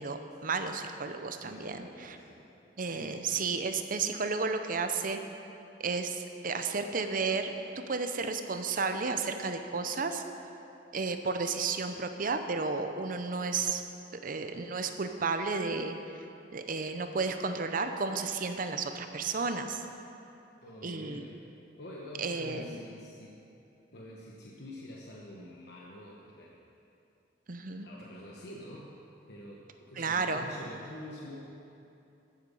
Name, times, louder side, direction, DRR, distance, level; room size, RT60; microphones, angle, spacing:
voice 1, 0.0-2.2 2.8-5.2 5.8-10.2 10.9-13.8 14.1-16.2 16.5-19.9 20.8-21.2 22.2-22.8 27.5-27.9 30.0-30.5, right 4 dB, 50° right, 7 dB, 0.7 m, -32 dB
voice 2, 1.4-2.6 2.9-3.2 20.6-21.4 21.8-23.4 23.9-26.6 27.7-28.9 29.3-31.5, left 1 dB, 65° left, -3 dB, 1.2 m, -47 dB
14.5 x 7.9 x 5.5 m, 2.7 s
head